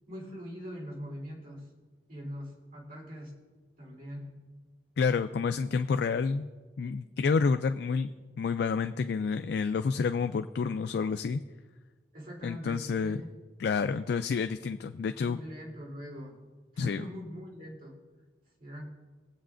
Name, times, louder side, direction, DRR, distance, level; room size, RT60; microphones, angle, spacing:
voice 1, 0.1-1.7 2.1-3.3 3.8-4.4 12.1-13.3 15.2-16.4 16.7-18.0 18.6-18.9, equal, 55° right, -2 dB, 3.5 m, -42 dB
voice 2, 5.0-6.5 6.8-8.1 8.4-11.4 12.4-13.2 13.6-15.4 16.8-17.0, left 5 dB, 65° left, 9 dB, 0.3 m, -29 dB
21.0 x 8.1 x 2.5 m, 1.4 s
head